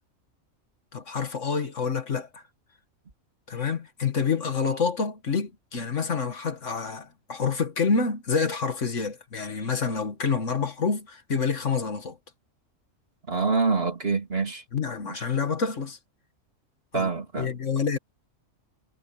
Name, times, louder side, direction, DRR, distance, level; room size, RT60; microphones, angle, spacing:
voice 1, 0.9-2.4 3.5-12.2 14.7-16.0 16.9-17.1 17.4-18.0, left 5 dB, 65° left, 2.0 m, -27 dB
voice 2, 13.3-14.6 15.1-15.2 16.9-17.5, right 4 dB, 45° right, 3.3 m, -26 dB
omnidirectional pair, 1.4 m